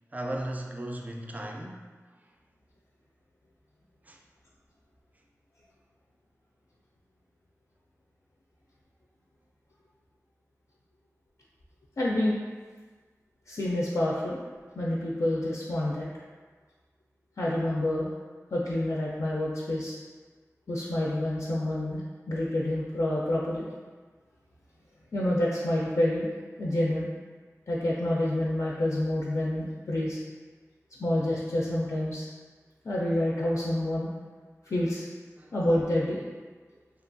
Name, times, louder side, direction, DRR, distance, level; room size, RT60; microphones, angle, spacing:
voice 1, 0.1-1.9 4.0-4.2 35.4-35.5 36.7-36.8, right 1 dB, 30° right, 1 dB, 0.3 m, -36 dB
voice 2, 12.0-12.4 13.5-14.4 14.8-16.1 17.4-18.1 18.5-19.9 20.7-22.0 22.3-23.6 25.1-26.3 26.6-27.1 27.7-30.2 31.0-32.3 32.8-34.1 34.7-35.1 35.5-36.2, left 1 dB, 65° left, -5 dB, 0.3 m, -28 dB
2.8 x 2.2 x 2.5 m, 1.5 s
wide cardioid pair, 60°, 6 cm